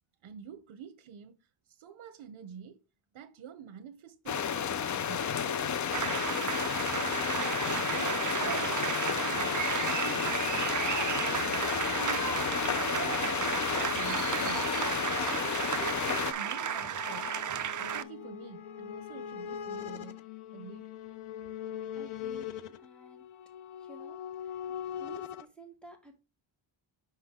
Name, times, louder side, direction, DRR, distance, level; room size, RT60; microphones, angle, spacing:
voice 1, 0.2-2.8 3.1-4.8 5.1-6.3 6.6-10.8 11.1-13.4 13.7-14.7 15.3-17.3 17.8-20.2 20.5-20.9 21.4-21.5, right 8 dB, 80° right, 0.7 m, -48 dB
sound 1, 4.3-16.3, left 8 dB, 40° left, 0.4 m, -32 dB
sound 2, 5.9-18.0, right 9 dB, 40° right, 0.5 m, -33 dB
sound 3, 15.4-25.5, left 9 dB, 85° left, 0.7 m, -42 dB
voice 2, 21.8-23.3 23.8-26.2, right 1 dB, ahead, 1.6 m, -52 dB
5.8 x 5.4 x 3.6 m
wide cardioid pair, 130°, 48 cm